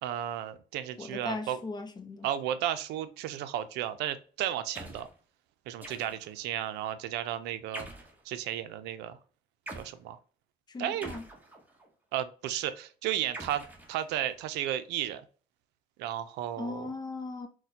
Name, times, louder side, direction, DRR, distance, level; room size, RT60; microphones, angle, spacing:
voice 1, 0.0-1.6 2.2-5.1 5.7-7.9 8.3-9.2 9.8-10.2 10.8-11.2 12.1-15.2 16.0-16.9, right 11 dB, 90° right, 0.4 m, -34 dB
voice 2, 1.0-2.3 10.7-11.2 16.6-17.5, left 3 dB, 25° left, 0.6 m, -38 dB
sound 1, 4.7-5.1 5.8-6.4 7.7-8.2 9.7-9.9 11.0-11.9 13.3-14.4, right 1 dB, 10° right, 0.9 m, -44 dB
4.0 x 2.2 x 2.6 m
cardioid pair, 110°, 17 cm